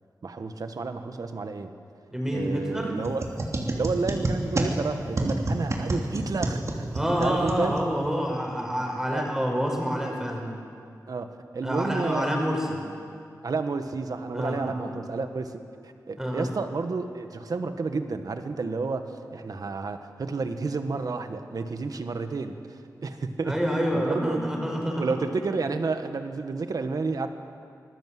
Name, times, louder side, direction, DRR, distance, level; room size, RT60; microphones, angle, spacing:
voice 1, 0.2-1.7 2.3-3.2 3.7-6.8 7.2-7.8 9.1-9.3 11.1-12.4 13.4-15.6 15.8-23.6 23.9-24.4 25.0-27.3, right 4 dB, 65° right, 7 dB, 1.6 m, -31 dB
voice 2, 2.1-2.9 6.9-10.5 11.6-12.8 14.3-14.8 16.2-16.5 23.5-25.1, equal, 5° right, 0 dB, 5.3 m, -27 dB
sound 1, 3.0-8.1, right 2 dB, 45° right, 2.7 m, -29 dB
26.0 x 20.0 x 7.8 m, 2.4 s
wide cardioid pair, 110°, 7 cm